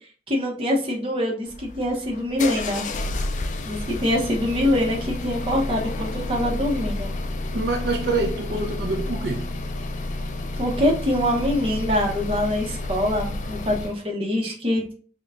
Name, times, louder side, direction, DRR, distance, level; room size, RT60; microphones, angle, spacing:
voice 1, 0.3-2.9 3.6-7.1 10.6-14.9, left 1 dB, 30° right, 0.8 m, -24 dB
sound 1, 1.5-14.0, left 2 dB, 45° left, 0.3 m, -30 dB
voice 2, 7.5-9.5, right 3 dB, 65° right, 0.5 m, -26 dB
5.2 x 2.2 x 2.4 m
head